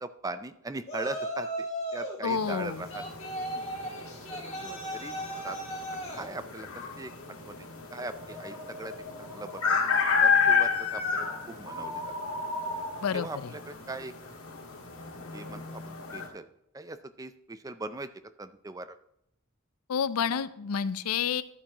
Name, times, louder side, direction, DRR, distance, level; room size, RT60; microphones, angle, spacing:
voice 1, 0.0-1.7 1.9-3.0 4.3-5.2 5.4-5.6 6.1-7.1 7.4-8.9 9.2-9.8 10.2-12.0 13.1-14.1 15.3-16.5 16.7-18.1 18.4-19.0, right 2 dB, 15° right, 12 dB, 0.4 m, -40 dB
Yell, 0.9-2.2 2.9-6.3, right 1 dB, 30° left, 2.3 m, -36 dB
voice 2, 2.2-2.8 13.0-13.5 19.9-21.4, left 6 dB, 90° left, 15 dB, 0.5 m, -29 dB
sound 1, 2.3-16.3, left 5 dB, 75° left, 1.7 m, -31 dB
12.0 x 8.5 x 3.0 m, 0.75 s
head